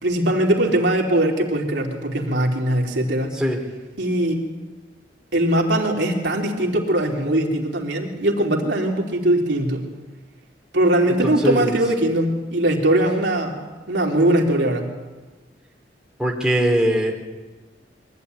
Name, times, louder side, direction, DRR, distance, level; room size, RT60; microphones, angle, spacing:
voice 1, 0.0-3.3 4.0-4.4 5.3-9.8 10.7-13.6 13.9-14.9, right 1 dB, 75° right, 0 dB, 3.4 m, -20 dB
voice 2, 11.2-11.8 16.2-17.1, equal, 5° right, 0 dB, 3.0 m, -21 dB
23.0 x 15.5 x 9.4 m, 1.2 s
head